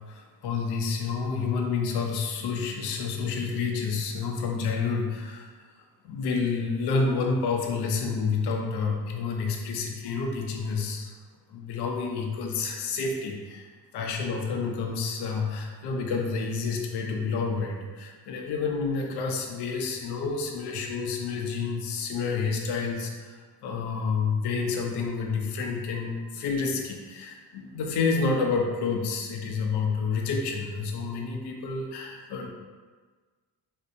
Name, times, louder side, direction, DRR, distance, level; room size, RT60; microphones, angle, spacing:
voice 1, 0.0-5.5 6.0-11.1 11.5-13.6 13.9-32.5, left 4 dB, 60° left, 1 dB, 0.5 m, -29 dB
2.6 x 2.1 x 2.7 m, 1.4 s
supercardioid pair, 65°, 47 cm